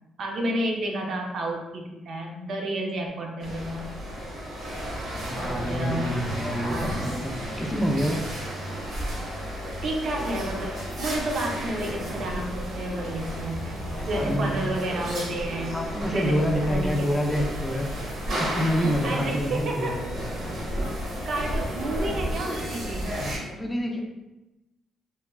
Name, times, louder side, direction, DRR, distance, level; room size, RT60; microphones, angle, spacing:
voice 1, 0.2-3.9 5.4-6.2 9.8-15.8 16.1-17.1 19.0-20.0 21.2-23.1, right 1 dB, 60° right, 0 dB, 0.5 m, -31 dB
sound 1, 3.4-23.4, equal, 80° right, 0.9 m, -32 dB
voice 2, 5.3-8.3 14.0-14.5 15.7-17.9 18.4-19.9 23.4-24.0, equal, 15° left, 0 dB, 0.4 m, -27 dB
3.0 x 2.2 x 2.3 m, 1.0 s
cardioid pair, 90°, 0 cm